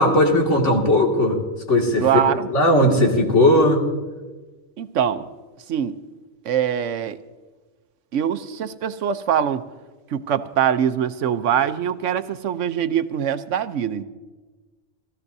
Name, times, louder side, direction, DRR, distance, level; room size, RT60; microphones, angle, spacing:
voice 1, 0.0-1.4 1.7-3.9, left 1 dB, 75° left, 0 dB, 2.6 m, -17 dB
voice 2, 2.0-2.5 4.8-5.3 5.7-6.0 6.4-7.2 8.1-9.6 10.1-14.0, right 9 dB, 85° right, 11 dB, 1.1 m, -23 dB
29.5 x 14.5 x 2.7 m, 1.3 s
omnidirectional pair, 1.2 m